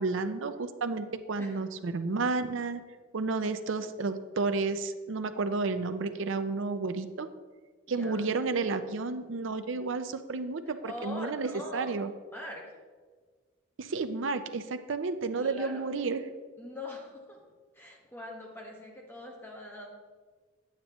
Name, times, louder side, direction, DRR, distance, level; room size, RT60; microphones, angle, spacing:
voice 1, 0.0-2.8 3.1-7.3 7.9-12.1 13.8-16.2, right 3 dB, 75° right, 10 dB, 0.5 m, -31 dB
voice 2, 7.9-8.3 10.7-12.0 12.3-12.8 15.4-15.9 16.6-17.4 17.7-19.9, left 1 dB, 10° left, -2 dB, 1.3 m, -42 dB
8.8 x 8.8 x 3.0 m, 1.5 s
head